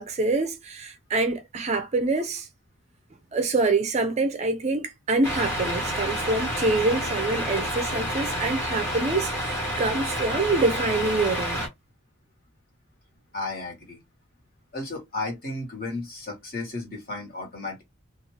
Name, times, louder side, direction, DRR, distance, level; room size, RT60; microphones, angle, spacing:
voice 1, 0.0-2.5 3.3-11.7, right 3 dB, 30° right, 0.4 m, -26 dB
Truck, 5.2-11.7, equal, 10° left, 1.0 m, -29 dB
voice 2, 13.3-14.0 14.7-17.8, left 2 dB, 45° left, 1.3 m, -34 dB
2.6 x 2.4 x 3.1 m
head